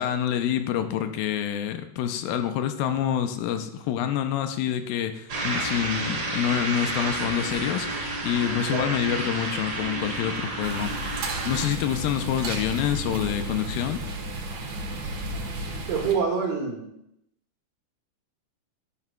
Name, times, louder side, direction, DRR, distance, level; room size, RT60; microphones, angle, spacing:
voice 1, 0.0-11.0 11.4-14.0, left 10 dB, 90° left, 8 dB, 2.4 m, -27 dB
sound 1, 5.3-11.7, right 2 dB, 40° right, 1.5 m, -30 dB
sound 2, 10.6-16.1, right 2 dB, 60° right, 2.3 m, -33 dB
voice 2, 15.9-16.9, right 6 dB, 75° right, 0 dB, 3.2 m, -26 dB
11.0 x 11.0 x 2.3 m, 0.80 s
omnidirectional pair, 4.1 m